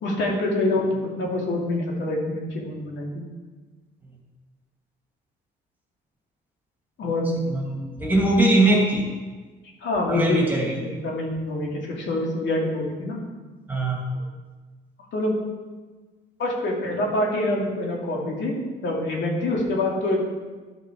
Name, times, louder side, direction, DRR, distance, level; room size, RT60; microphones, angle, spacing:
voice 1, 0.0-3.3 7.0-7.4 9.8-10.5 10.8-13.2 14.1-14.2 15.1-15.3 16.4-20.2, left 2 dB, 70° left, -1 dB, 2.6 m, -26 dB
voice 2, 7.5-9.1 10.1-10.7 13.7-14.0, right 2 dB, 10° right, -2 dB, 2.7 m, -21 dB
13.0 x 6.1 x 4.7 m, 1.3 s
cardioid pair, 90°, 20 cm